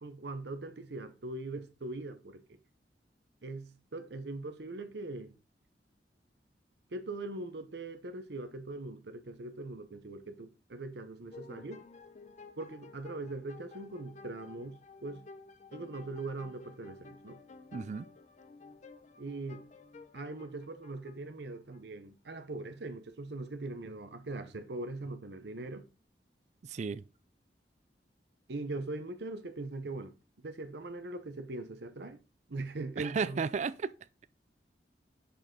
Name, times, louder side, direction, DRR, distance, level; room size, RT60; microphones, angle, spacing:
voice 1, 0.0-2.4 3.4-5.3 6.9-11.9 12.6-14.7 15.0-15.2 15.7-17.4 19.2-19.6 20.1-25.8 28.5-30.1 30.4-32.2 32.5-33.4, right 2 dB, 70° right, 0.8 m, -41 dB
sound 1, 11.3-21.8, left 4 dB, 40° left, 0.6 m, -53 dB
voice 2, 17.7-18.1 26.6-27.0 33.0-33.9, right 5 dB, 40° right, 0.3 m, -34 dB
6.6 x 5.2 x 3.8 m
head